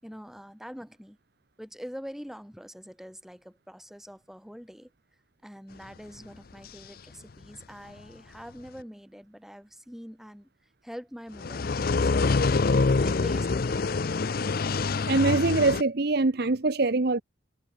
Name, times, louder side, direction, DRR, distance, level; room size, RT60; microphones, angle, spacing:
voice 1, 0.0-1.2 1.6-4.9 5.4-10.5 10.8-12.3 13.0-14.3, equal, ahead, 4.6 m, -44 dB
sound 1, 11.4-15.8, left 4 dB, 50° left, 0.5 m, -25 dB
voice 2, 15.1-17.2, right 3 dB, 55° right, 0.8 m, -23 dB
head